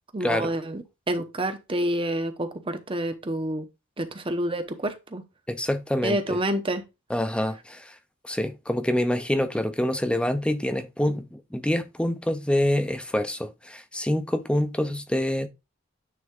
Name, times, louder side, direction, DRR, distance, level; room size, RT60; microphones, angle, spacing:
voice 1, 0.1-3.7 4.0-5.2 6.0-6.8, right 1 dB, 25° right, 0.9 m, -28 dB
voice 2, 5.5-6.4 7.1-7.9 8.2-15.5, left 1 dB, 5° left, 0.6 m, -26 dB
9.4 x 3.5 x 3.6 m
head